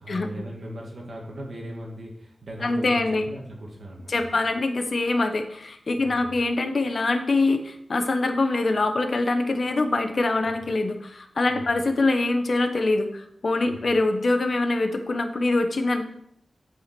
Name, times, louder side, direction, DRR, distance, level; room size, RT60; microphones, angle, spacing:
voice 1, 0.0-4.3 6.0-6.3 11.5-11.7 13.7-13.8, right 1 dB, 65° right, -2 dB, 1.7 m, -38 dB
voice 2, 2.6-3.2 4.1-16.0, left 2 dB, 55° left, 6 dB, 1.0 m, -24 dB
8.6 x 5.0 x 5.9 m, 0.73 s
wide cardioid pair, 100°, 0 cm